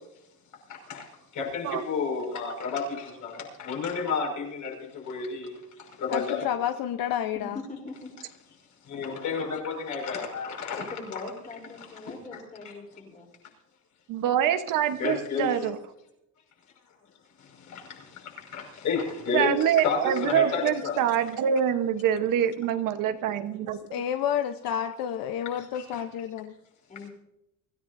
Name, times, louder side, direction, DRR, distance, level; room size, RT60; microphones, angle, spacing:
voice 1, 0.7-6.4 8.8-11.2 11.8-12.4 15.0-15.6 17.4-21.0 25.7-25.8 27.0-27.1, left 5 dB, 55° left, 1 dB, 5.6 m, -32 dB
voice 2, 6.1-7.6 23.9-26.5, left 9 dB, 80° left, 8 dB, 0.9 m, -30 dB
voice 3, 7.7-8.1 10.9-13.3 26.9-27.1, left 3 dB, 25° left, 1 dB, 3.4 m, -42 dB
voice 4, 14.1-15.8 19.3-23.8, right 9 dB, 65° right, 9 dB, 1.1 m, -25 dB
24.5 x 15.0 x 2.7 m, 0.85 s
cardioid pair, 160°, 34 cm